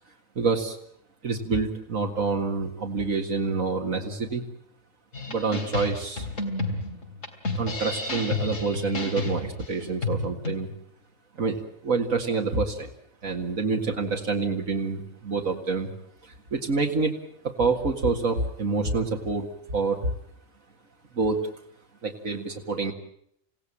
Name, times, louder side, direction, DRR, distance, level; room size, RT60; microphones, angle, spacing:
voice 1, 0.4-0.8 1.2-4.4 5.3-6.3 7.6-10.7 11.4-12.9 13.2-15.9 16.2-17.1 17.4-20.0 21.2-21.4 22.0-22.9, right 4 dB, 90° right, 2 dB, 2.4 m, -27 dB
sound 1, 5.1-10.6, left 2 dB, 70° left, 3.7 m, -31 dB
28.5 x 17.0 x 8.7 m, 0.71 s
omnidirectional pair, 1.4 m